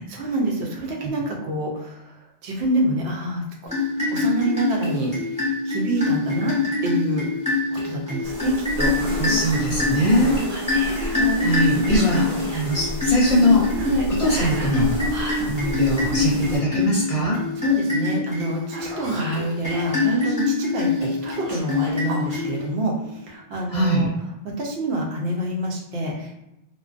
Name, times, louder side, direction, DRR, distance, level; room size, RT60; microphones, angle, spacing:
voice 1, 0.1-2.0 2.4-3.7 4.1-5.1 5.7-6.5 6.8-7.3 7.7-9.2 10.7-11.5 13.8-14.1 15.4-15.5 17.6-22.9 23.3-24.1 24.6-26.4, right 1 dB, 80° right, -1 dB, 0.8 m, -27 dB
sound 1, 3.7-22.9, left 3 dB, 5° right, 1.2 m, -25 dB
sound 2, 8.2-16.6, equal, 60° right, 1.2 m, -32 dB
voice 2, 9.2-10.4 11.4-13.7 14.2-14.9 15.4-17.4 23.7-24.1, equal, 40° left, -7 dB, 0.7 m, -21 dB
Whispering, 10.5-11.2 11.8-12.7 14.2-15.5 18.5-20.4 21.2-22.4, right 1 dB, 40° right, 0.7 m, -35 dB
2.4 x 2.1 x 2.4 m, 0.87 s
omnidirectional pair, 1.1 m